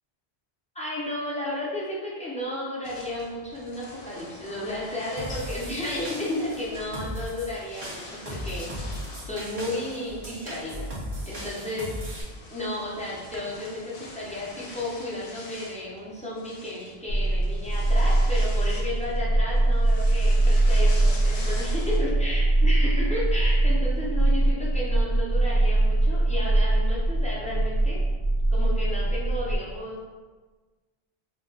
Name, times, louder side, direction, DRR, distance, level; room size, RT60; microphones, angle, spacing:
voice 1, 0.7-10.9 11.2-12.0 12.5-28.0 28.5-30.0, left 1 dB, 10° left, -7 dB, 0.4 m, -33 dB
sound 1, 2.8-22.0, left 2 dB, 75° left, 0.8 m, -45 dB
sound 2, 5.2-12.2, equal, 40° right, 0.6 m, -37 dB
sound 3, 17.1-29.6, right 2 dB, 85° right, 0.9 m, -22 dB
2.2 x 2.2 x 3.8 m, 1.3 s
omnidirectional pair, 1.1 m